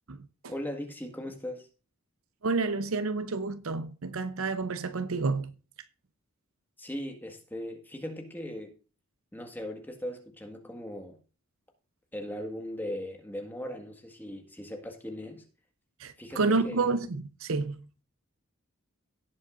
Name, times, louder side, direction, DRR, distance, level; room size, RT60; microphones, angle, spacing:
voice 1, 0.5-1.7 6.8-8.7 9.3-11.2 12.1-15.4 16.2-16.9, left 1 dB, 10° left, 1.7 m, -38 dB
voice 2, 2.4-5.5 16.0-17.8, right 3 dB, 70° right, 0.7 m, -29 dB
17.5 x 7.6 x 2.5 m
head